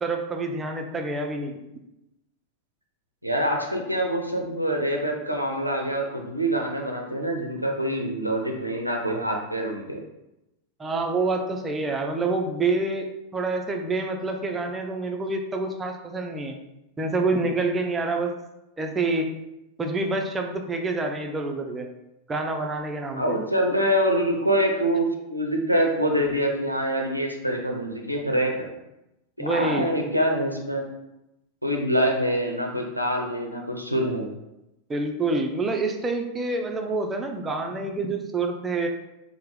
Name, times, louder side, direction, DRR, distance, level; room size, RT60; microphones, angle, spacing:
voice 1, 0.0-1.6 10.8-16.6 17.0-18.3 18.8-19.3 19.8-21.9 22.3-23.4 29.4-29.9 34.9-38.9, right 3 dB, 15° right, 3 dB, 0.4 m, -27 dB
voice 2, 3.2-10.0 23.2-28.6 29.4-30.9 31.6-34.3, equal, 90° right, 1 dB, 0.5 m, -25 dB
4.3 x 2.0 x 3.3 m, 0.91 s
figure-of-eight pair, 90°, 0 cm